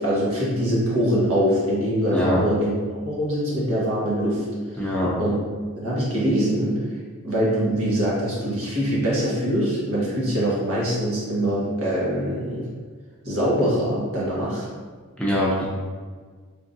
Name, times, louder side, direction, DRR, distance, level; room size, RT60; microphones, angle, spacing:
voice 1, 0.0-2.7 3.0-4.4 4.7-4.9 5.2-5.4 5.7-6.8 7.2-12.6 13.2-14.7, equal, 75° right, -7 dB, 1.3 m, -23 dB
voice 2, 4.8-5.1 15.2-15.7, left 1 dB, 5° left, -6 dB, 0.6 m, -22 dB
3.6 x 3.5 x 2.6 m, 1.6 s
head